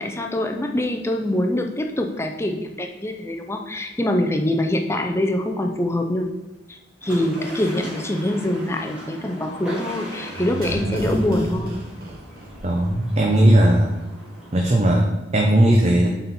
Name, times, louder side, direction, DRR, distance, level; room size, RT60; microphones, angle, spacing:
voice 1, 0.0-6.3 6.7-11.8, left 1 dB, 15° left, 3 dB, 0.5 m, -24 dB
sound 1, 7.0-14.7, equal, 5° right, 1.9 m, -39 dB
sound 2, 10.3-13.2 13.4-13.5, right 1 dB, 55° right, 1.1 m, -30 dB
voice 2, 12.6-14.0 14.5-15.1 15.3-16.1, right 1 dB, 35° right, 0 dB, 0.7 m, -17 dB
7.3 x 4.3 x 4.2 m, 1.0 s
head